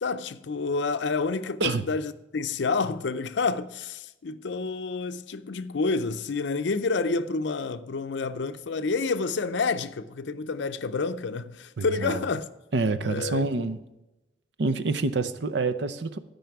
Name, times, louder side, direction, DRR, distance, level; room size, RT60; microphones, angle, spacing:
voice 1, 0.0-12.5 13.1-13.7, left 4 dB, 70° left, 0.5 m, -29 dB
voice 2, 11.8-12.2 12.7-13.8 14.6-16.2, right 3 dB, 70° right, 0.6 m, -27 dB
12.5 x 5.5 x 5.8 m
head